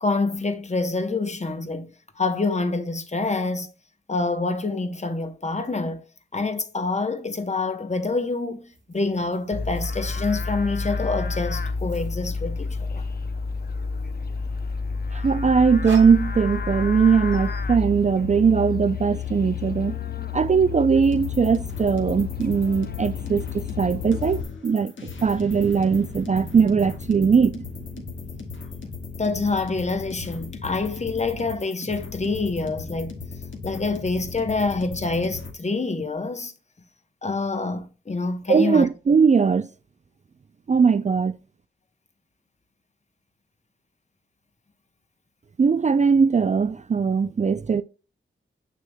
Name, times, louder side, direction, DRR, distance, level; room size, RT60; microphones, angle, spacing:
voice 1, 0.0-1.9 2.2-3.7 4.1-6.0 6.3-13.0 29.2-33.1 33.6-36.5 37.2-38.9, left 3 dB, 35° left, 1.0 m, -26 dB
sound 1, 8.7-13.0 13.2-14.5 15.2-17.0 17.3-17.6, right 5 dB, 65° right, 1.9 m, -44 dB
Livestock farm animals working animals, 9.5-24.4, left 5 dB, 50° left, 0.6 m, -30 dB
voice 2, 15.1-20.0 20.3-27.7 27.9-28.0 38.5-39.7 40.7-41.4 45.6-47.8, right 5 dB, 35° right, 0.4 m, -20 dB
sound 2, 21.0-35.5, left 5 dB, 70° left, 1.5 m, -37 dB
6.8 x 6.4 x 2.2 m
cardioid pair, 70°, 21 cm